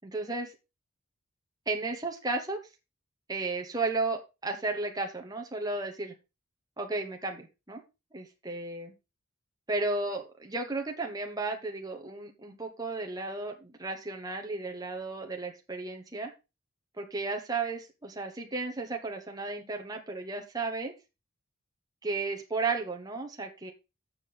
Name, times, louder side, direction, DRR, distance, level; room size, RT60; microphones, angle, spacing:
voice 1, 0.0-0.5 1.7-2.6 3.3-6.1 6.8-7.8 8.1-8.9 9.7-16.3 17.0-20.9 22.0-23.7, right 3 dB, 20° right, 3 dB, 1.1 m, -34 dB
7.6 x 5.9 x 5.0 m, 0.27 s
head